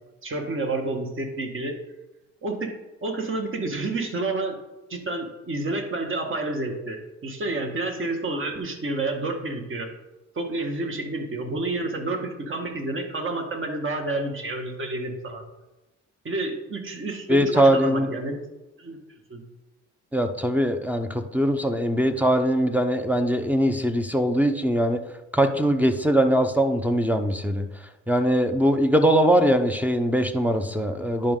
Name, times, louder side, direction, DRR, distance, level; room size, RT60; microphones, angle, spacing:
voice 1, 0.2-1.8 2.4-2.7 3.0-4.6 4.9-9.9 10.3-15.4 16.2-18.4 18.8-19.0 19.3-19.4, right 2 dB, 40° right, 3 dB, 1.7 m, -29 dB
voice 2, 17.3-18.1 20.1-25.0 25.3-27.7 28.1-31.4, equal, 5° right, 7 dB, 0.7 m, -21 dB
10.5 x 5.3 x 3.8 m, 1.0 s
cardioid pair, 90°, 30 cm